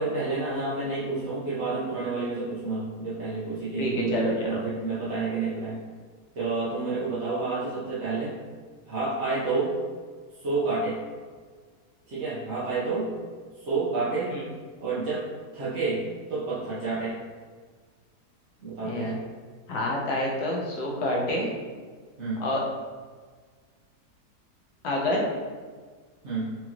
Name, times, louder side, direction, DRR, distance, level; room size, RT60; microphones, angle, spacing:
voice 1, 0.0-5.8 6.3-8.3 8.9-9.8 10.4-11.0 12.1-13.1 13.6-14.3 14.8-15.2 15.5-17.2 18.6-19.2 22.2-22.5 26.2-26.5, right 3 dB, 50° right, -10 dB, 1.0 m, -29 dB
voice 2, 3.7-4.6 14.3-14.4 18.8-19.1 19.7-21.5 22.4-22.6 24.8-25.2, left 1 dB, 75° left, -2 dB, 1.3 m, -28 dB
4.7 x 2.5 x 2.9 m, 1.5 s
omnidirectional pair, 1.7 m